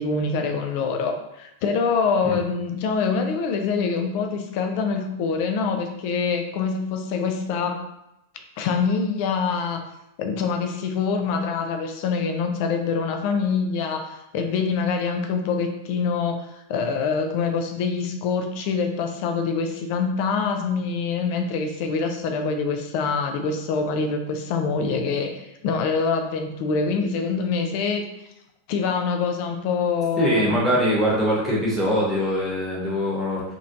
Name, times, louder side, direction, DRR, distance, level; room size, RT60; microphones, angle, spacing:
voice 1, 0.0-7.8 8.6-9.8 10.2-25.3 25.6-28.1 28.7-30.7, left 5 dB, 45° left, 5 dB, 0.4 m, -25 dB
voice 2, 30.2-33.4, equal, ahead, -7 dB, 1.1 m, -22 dB
3.0 x 2.5 x 2.6 m, 0.85 s
figure-of-eight pair, 90°, 0 cm